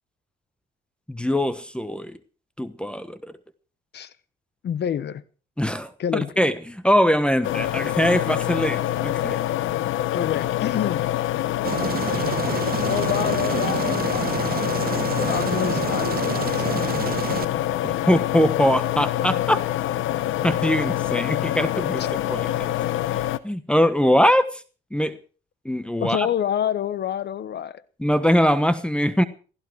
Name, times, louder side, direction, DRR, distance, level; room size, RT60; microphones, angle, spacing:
voice 1, 1.1-2.2 2.6-3.3 5.6-5.9 6.4-9.4 17.8-19.6 20.4-22.7 23.4-24.6 24.9-25.2 25.6-26.3 28.0-29.2, equal, 5° left, 1.2 m, -22 dB
voice 2, 4.6-5.2 6.0-6.5 10.1-11.0 12.8-14.4 15.1-16.9 26.0-27.8, left 9 dB, 60° left, 1.1 m, -28 dB
sound 1, 7.4-23.4, left 13 dB, 85° left, 0.9 m, -25 dB
Aircraft, 11.6-17.4, right 8 dB, 50° right, 1.0 m, -28 dB
16.5 x 15.5 x 4.8 m
cardioid pair, 90°, 20 cm